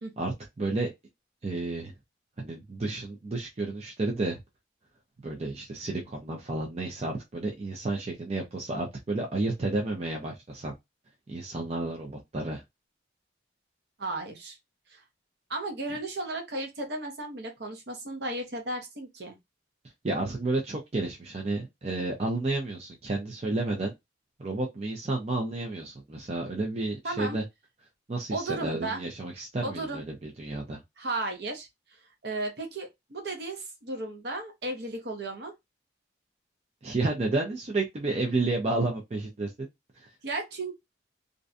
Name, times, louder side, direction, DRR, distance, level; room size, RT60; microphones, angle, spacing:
voice 1, 0.2-0.9 1.4-1.9 2.4-4.4 5.2-10.7 11.3-12.6 20.0-23.9 24.4-27.4 28.1-30.8 36.8-39.7 40.0-40.1, right 2 dB, 35° right, 0.5 m, -31 dB
voice 2, 14.0-14.6 14.9-15.0 15.5-19.4 27.0-27.4 28.3-29.0 29.6-30.0 31.0-31.7 32.2-35.5 40.2-40.7, right 2 dB, 60° right, 0.8 m, -34 dB
2.5 x 2.2 x 2.5 m
head